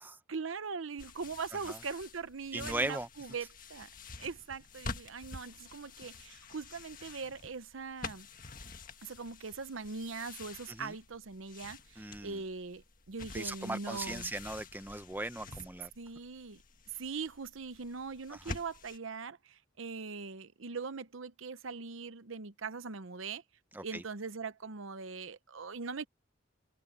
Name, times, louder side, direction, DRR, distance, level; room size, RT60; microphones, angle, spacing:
voice 1, 0.3-3.9 4.2-8.3 9.0-14.3 16.0-16.6 17.0-23.4 23.8-26.0, right 4 dB, 80° right, 0.8 m, -41 dB
sound 1, 1.0-19.0, left 3 dB, 45° left, 1.8 m, -48 dB
voice 2, 2.5-3.1 10.7-10.9 12.0-12.4 13.3-15.9 18.3-18.4 23.7-24.0, right 2 dB, 10° right, 0.7 m, -38 dB
open air
head